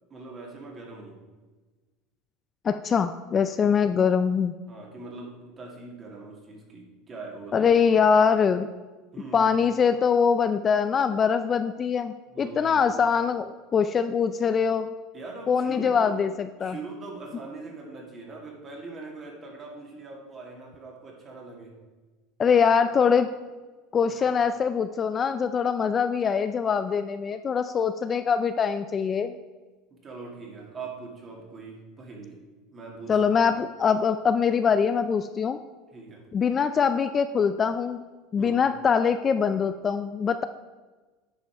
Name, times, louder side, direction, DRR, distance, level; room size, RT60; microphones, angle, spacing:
voice 1, 0.1-1.2 3.6-3.8 4.7-7.7 9.1-9.5 12.3-12.8 15.1-16.2 16.6-21.8 24.1-24.3 29.9-32.4 32.7-33.2 35.9-36.3 38.4-38.7, right 3 dB, 25° right, -1 dB, 2.3 m, -42 dB
voice 2, 2.6-4.5 7.5-8.7 9.3-14.9 15.5-16.8 22.4-23.3 23.9-29.4 33.1-35.6 36.3-38.0 38.3-40.4, left 6 dB, 25° left, 10 dB, 0.3 m, -23 dB
9.9 x 5.4 x 4.6 m, 1.3 s
supercardioid pair, 135°, 0 cm